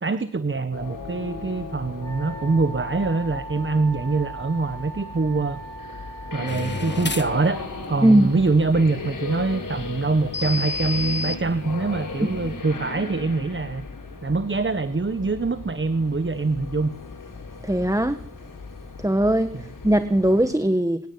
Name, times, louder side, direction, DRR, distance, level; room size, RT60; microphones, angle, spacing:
voice 1, 0.0-5.6 6.3-13.8 14.2-16.9 19.5-19.6, right 3 dB, 40° right, 12 dB, 1.4 m, -24 dB
sound 1, 0.7-20.5, left 4 dB, 80° left, 6.1 m, -37 dB
Wind instrument woodwind instrument, 2.0-7.5, right 3 dB, 10° left, 6.2 m, -40 dB
sound 2, 6.5-12.6, left 3 dB, 35° left, 1.6 m, -34 dB
voice 2, 17.6-18.2 19.0-19.5 19.8-21.0, right 1 dB, 10° right, 10 dB, 1.7 m, -19 dB
25.0 x 19.0 x 9.5 m, 0.76 s
cardioid pair, 45°, 32 cm